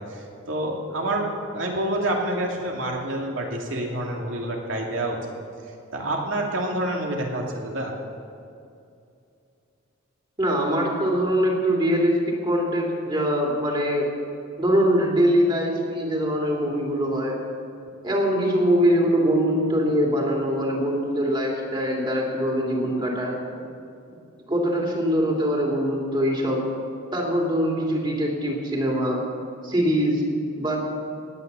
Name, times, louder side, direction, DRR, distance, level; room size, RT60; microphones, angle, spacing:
voice 1, 0.0-5.2 5.9-7.9, right 1 dB, 65° right, 0 dB, 2.6 m, -28 dB
voice 2, 10.4-14.1 14.6-17.4 18.0-23.4 24.5-26.6 27.1-29.2 29.6-30.2 30.6-30.8, equal, 25° right, -2 dB, 3.1 m, -23 dB
18.5 x 9.4 x 7.0 m, 2.5 s
head